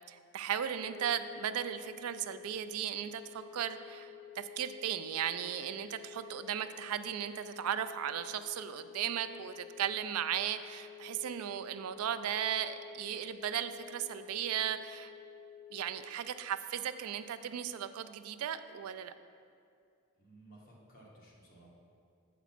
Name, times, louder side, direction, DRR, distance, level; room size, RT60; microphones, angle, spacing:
voice 1, 0.1-15.1 15.7-19.1, right 9 dB, 85° right, 11 dB, 0.4 m, -36 dB
sound 1, 0.8-15.8, left 9 dB, ahead, 0.6 m, -51 dB
voice 2, 20.2-21.7, right 1 dB, 45° left, -5 dB, 1.6 m, -57 dB
7.1 x 5.0 x 5.9 m, 2.3 s
head